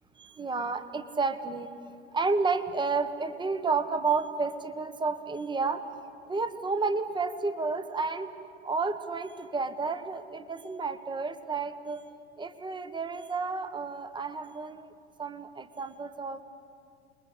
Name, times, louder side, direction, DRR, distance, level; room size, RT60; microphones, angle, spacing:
voice 1, 0.2-1.7 2.1-5.8 6.3-8.3 8.6-12.0 12.4-14.9 15.2-16.4, right 4 dB, 15° right, 11 dB, 1.5 m, -31 dB
29.5 x 22.0 x 8.5 m, 2.5 s
figure-of-eight pair, 80°, 33 cm